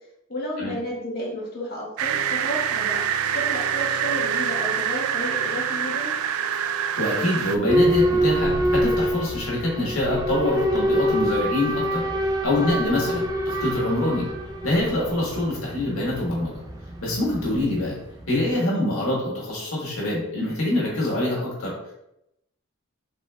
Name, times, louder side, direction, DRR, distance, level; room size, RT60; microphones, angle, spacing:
voice 1, 0.3-3.0 3.3-6.1, equal, 45° left, -4 dB, 1.4 m, -32 dB
sound 1, 2.0-7.6, right 8 dB, 85° right, 0.3 m, -25 dB
voice 2, 7.0-12.0 12.4-14.3 14.6-16.6 17.0-18.0 18.3-21.7, left 1 dB, 90° left, -5 dB, 1.6 m, -25 dB
Boat Water vehicle / Alarm, 7.7-18.3, equal, 20° right, 0.4 m, -25 dB
4.2 x 3.4 x 3.3 m, 0.83 s
head